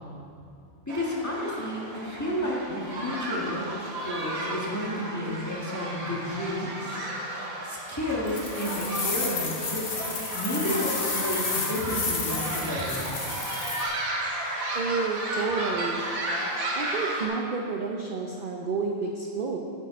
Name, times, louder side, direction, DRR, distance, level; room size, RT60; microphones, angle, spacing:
voice 1, 0.9-3.7 4.0-7.0 7.6-9.9 10.3-13.1, left 1 dB, 15° left, -5 dB, 1.5 m, -31 dB
sound 1, 0.9-17.3, right 1 dB, 90° right, 1.8 m, -33 dB
sound 2, 8.3-13.8, left 4 dB, 90° left, 1.6 m, -32 dB
voice 2, 14.7-16.0 16.8-19.6, right 4 dB, 50° right, 1 dB, 0.7 m, -30 dB
9.0 x 7.4 x 5.1 m, 2.6 s
omnidirectional pair, 1.4 m